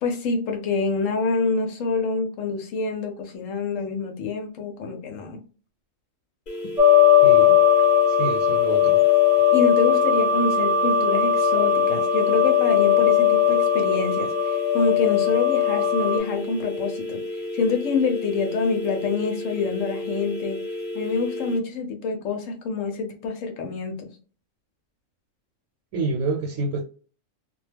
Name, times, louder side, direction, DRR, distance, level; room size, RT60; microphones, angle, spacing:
voice 1, 0.0-5.4 9.5-17.2 17.5-20.6 20.9-24.1, left 4 dB, 75° left, 0.9 m, -26 dB
sound 1, 6.5-21.6, left 1 dB, 50° left, 0.7 m, -33 dB
sound 2, 6.8-16.2, left 8 dB, 55° right, 0.4 m, -19 dB
voice 2, 7.2-7.6 8.1-9.0 25.9-26.8, right 3 dB, 75° right, 1.0 m, -28 dB
2.3 x 2.2 x 3.2 m
omnidirectional pair, 1.4 m